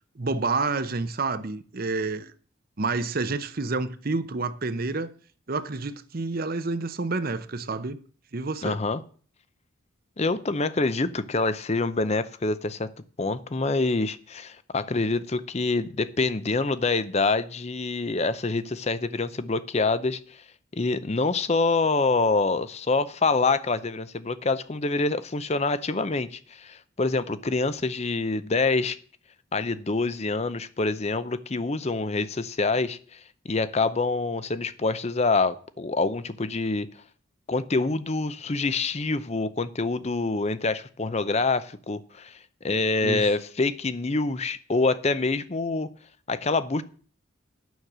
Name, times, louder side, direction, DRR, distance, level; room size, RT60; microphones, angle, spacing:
voice 1, 0.2-2.3 2.8-5.1 5.5-8.0 8.3-8.8 43.0-43.3, right 3 dB, 45° right, 0.7 m, -29 dB
voice 2, 8.6-9.0 10.2-12.9 13.2-20.4 20.7-29.0 29.5-36.9 37.5-45.9 46.3-46.8, left 3 dB, 30° left, 0.6 m, -26 dB
9.3 x 6.5 x 7.3 m
head